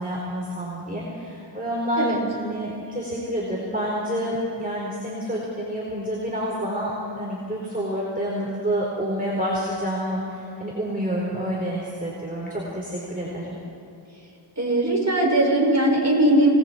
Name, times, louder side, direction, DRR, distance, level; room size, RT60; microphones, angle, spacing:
voice 1, 0.0-13.6, equal, 20° right, -4 dB, 4.5 m, -28 dB
voice 2, 14.6-16.5, right 1 dB, 35° right, -3 dB, 6.8 m, -19 dB
28.5 x 20.5 x 4.6 m, 2.7 s
wide cardioid pair, 65°, 45 cm